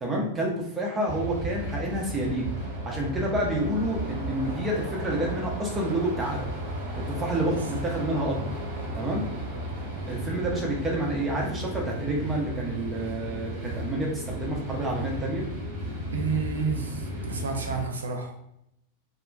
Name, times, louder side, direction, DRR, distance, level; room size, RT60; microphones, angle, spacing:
voice 1, 0.0-2.5 2.8-6.5 7.0-8.5 9.0-9.3 10.1-15.4, right 1 dB, 15° right, -2 dB, 0.8 m, -29 dB
sound 1, 1.1-17.8, right 1 dB, 55° right, 0.9 m, -34 dB
voice 2, 16.1-18.4, right 5 dB, 70° right, 3 dB, 0.5 m, -30 dB
2.9 x 2.5 x 2.2 m, 0.77 s
figure-of-eight pair, 90°, 0 cm